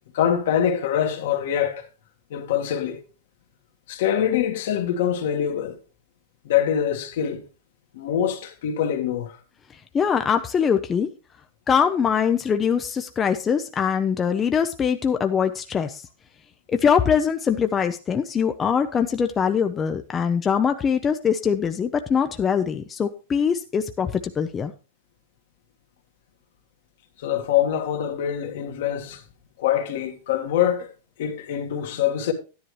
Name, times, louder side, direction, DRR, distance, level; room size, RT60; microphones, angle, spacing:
voice 1, 0.1-1.9 2.3-3.0 3.9-5.8 6.4-7.4 7.9-9.3 27.2-29.2 29.6-30.9 31.2-32.3, left 9 dB, 65° left, 1.7 m, -24 dB
voice 2, 9.9-11.1 11.7-16.1 16.7-24.7, left 7 dB, 15° left, 0.5 m, -22 dB
12.0 x 10.0 x 3.1 m
supercardioid pair, 155°, 0 cm